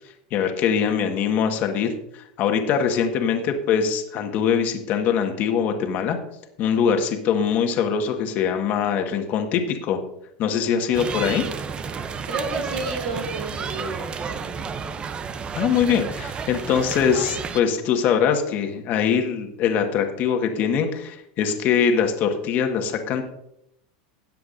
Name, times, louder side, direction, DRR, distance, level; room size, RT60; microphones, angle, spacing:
voice 1, 0.3-6.2 6.6-10.0 10.4-11.4 15.5-23.2, left 7 dB, 45° left, 5 dB, 1.5 m, -22 dB
sound 1, 10.9-17.6, right 5 dB, 25° right, 0.6 m, -31 dB
voice 2, 12.3-14.6, right 3 dB, 80° right, 1 dB, 3.4 m, -31 dB
17.5 x 7.7 x 2.6 m, 0.78 s
supercardioid pair, 130°, 4 cm